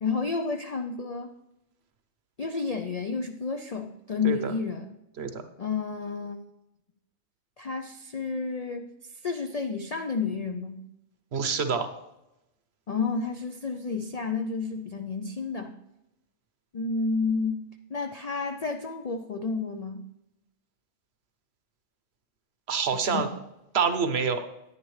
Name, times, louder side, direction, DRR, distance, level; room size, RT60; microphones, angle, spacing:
voice 1, 0.0-1.3 2.4-4.9 5.6-6.4 7.6-8.9 9.1-10.8 12.9-15.7 16.7-20.0 22.9-23.2, left 4 dB, 60° left, 5 dB, 0.4 m, -31 dB
voice 2, 11.3-12.0 22.7-23.3 23.7-24.4, right 5 dB, 55° right, 8 dB, 0.9 m, -26 dB
11.0 x 9.7 x 3.2 m, 0.90 s
omnidirectional pair, 1.4 m